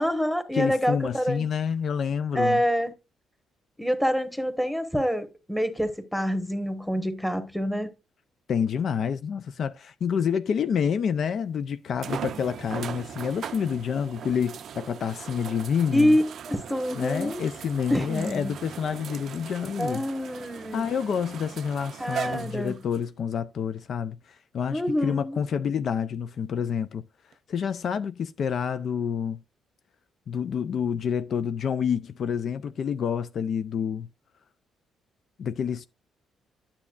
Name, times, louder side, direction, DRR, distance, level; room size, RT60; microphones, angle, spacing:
voice 1, 0.0-1.5 2.3-2.9 3.8-7.9 15.9-17.4 17.9-18.5 19.8-20.8 22.0-22.8 24.7-25.4, equal, ahead, 1.3 m, -26 dB
voice 2, 0.5-2.6 8.5-16.2 16.9-20.0 20.7-27.1 27.5-29.4 30.3-34.1 35.4-35.9, left 7 dB, 60° left, 0.4 m, -28 dB
sound 1, 10.9-11.0 12.0-23.0 23.8-23.9 27.3-27.4, right 8 dB, 65° right, 0.4 m, -39 dB
9.6 x 7.1 x 2.4 m
cardioid pair, 90°, 0 cm